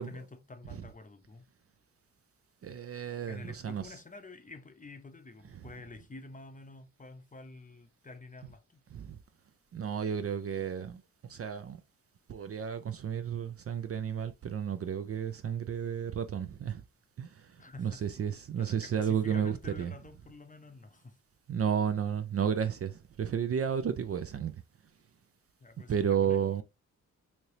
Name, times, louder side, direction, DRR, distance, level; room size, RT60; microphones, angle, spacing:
voice 1, 0.0-1.4 3.3-8.8 17.6-18.0 18.6-21.2 25.6-26.6, left 3 dB, 25° left, 0.7 m, -49 dB
voice 2, 2.6-3.8 8.9-9.2 9.7-11.8 12.3-16.8 17.2-19.9 21.5-24.6 25.9-26.6, right 8 dB, 40° right, 0.4 m, -32 dB
3.1 x 2.8 x 2.8 m
supercardioid pair, 40°, 35 cm